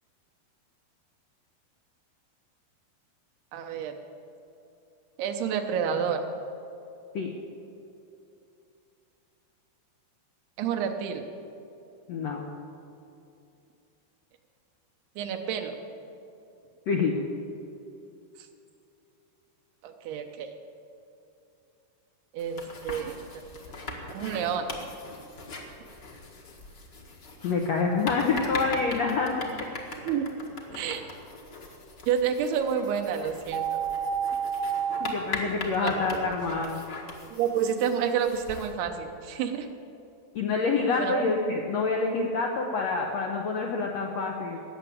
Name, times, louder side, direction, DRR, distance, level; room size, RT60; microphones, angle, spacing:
voice 1, 3.5-4.0 5.2-6.2 10.6-11.2 15.2-15.8 19.8-20.5 22.3-23.2 24.1-24.7 30.0-30.3 30.7-31.0 32.1-33.8 35.8-36.2 37.3-39.7 41.0-41.3, right 7 dB, 85° right, 4 dB, 3.0 m, -29 dB
voice 2, 12.1-12.4 16.9-17.1 27.4-29.4 35.0-36.8 40.3-44.6, left 4 dB, 85° left, 1 dB, 1.5 m, -27 dB
sound 1, 22.4-38.7, left 3 dB, 50° left, 1.3 m, -40 dB
sound 2, 33.5-35.1, right 7 dB, 65° right, 1.7 m, -29 dB
18.5 x 7.0 x 8.7 m, 2.7 s
omnidirectional pair, 4.5 m